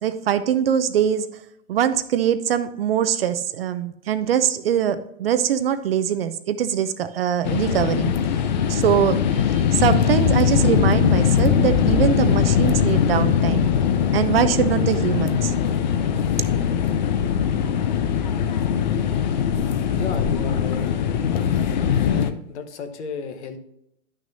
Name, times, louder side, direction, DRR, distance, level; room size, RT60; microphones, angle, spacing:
voice 1, 0.0-1.3 1.7-8.1 8.7-13.7 14.1-15.5, right 9 dB, 45° right, 11 dB, 0.6 m, -22 dB
sound 1, 7.4-22.3, left 8 dB, 35° left, 0.5 m, -21 dB
voice 2, 19.9-20.9 22.1-23.6, left 6 dB, 55° left, 8 dB, 1.2 m, -33 dB
11.0 x 6.2 x 2.7 m, 0.78 s
hypercardioid pair, 150°, 42 cm